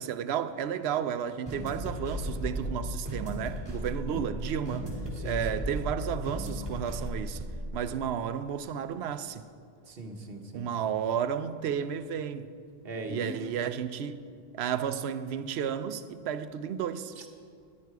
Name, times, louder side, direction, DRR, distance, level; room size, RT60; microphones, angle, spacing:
voice 1, 0.0-4.9 5.2-7.5 7.7-9.4 10.5-12.5 13.1-14.2 14.5-17.1, right 8 dB, 90° right, 0.8 m, -32 dB
sound 1, 1.5-7.8, equal, 25° right, 3.1 m, -35 dB
voice 2, 3.9-4.2 5.2-5.7 9.9-10.7 12.8-13.4 17.2-17.3, right 2 dB, 70° right, 1.3 m, -40 dB
13.0 x 10.5 x 4.7 m
omnidirectional pair, 1.0 m